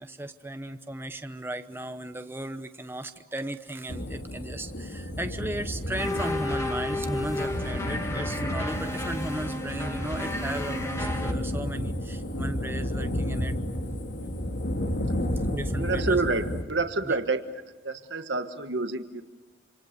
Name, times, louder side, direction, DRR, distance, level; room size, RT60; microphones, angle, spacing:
voice 1, 0.0-13.5 15.5-16.2 17.1-17.2, right 1 dB, 15° right, 8 dB, 0.9 m, -36 dB
sound 1, 3.9-16.6, left 1 dB, 65° left, 1.9 m, -32 dB
sound 2, 6.0-11.3, left 1 dB, 15° left, 2.0 m, -33 dB
voice 2, 15.8-17.4 17.8-19.2, right 3 dB, 90° right, 7 dB, 1.5 m, -28 dB
27.0 x 26.5 x 6.8 m, 1.2 s
head